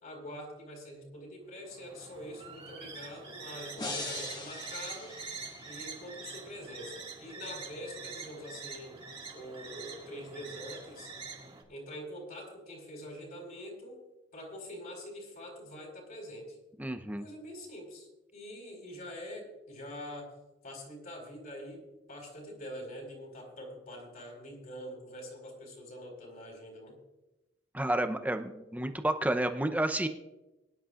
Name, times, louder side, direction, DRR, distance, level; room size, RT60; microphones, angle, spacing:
voice 1, 0.0-5.1 5.6-9.0 9.3-11.1 11.7-14.0 14.3-16.6 17.2-20.3 20.6-27.0, equal, 50° left, -1 dB, 4.4 m, -45 dB
sound 1, 1.6-11.6, right 4 dB, 30° right, 2.2 m, -45 dB
sound 2, 3.8-5.9, left 2 dB, 25° left, 1.8 m, -41 dB
voice 2, 16.8-17.3 27.7-30.1, right 1 dB, 10° right, 7 dB, 0.7 m, -30 dB
23.0 x 11.0 x 2.5 m, 1.0 s
head